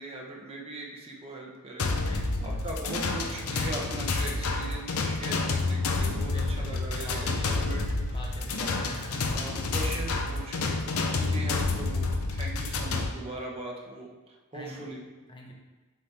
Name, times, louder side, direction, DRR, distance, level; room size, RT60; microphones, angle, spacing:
voice 1, 0.0-8.4 9.2-10.8 11.1-15.0, right 2 dB, 30° right, -2 dB, 1.0 m, -40 dB
sound 1, 1.8-13.1, left 3 dB, 90° left, 0.6 m, -29 dB
voice 2, 2.0-2.7 6.2-7.6 8.1-9.3 11.2-11.5 14.5-14.9 15.3-15.5, left 1 dB, 25° left, 0 dB, 0.9 m, -44 dB
7.4 x 4.4 x 3.4 m, 1.2 s
head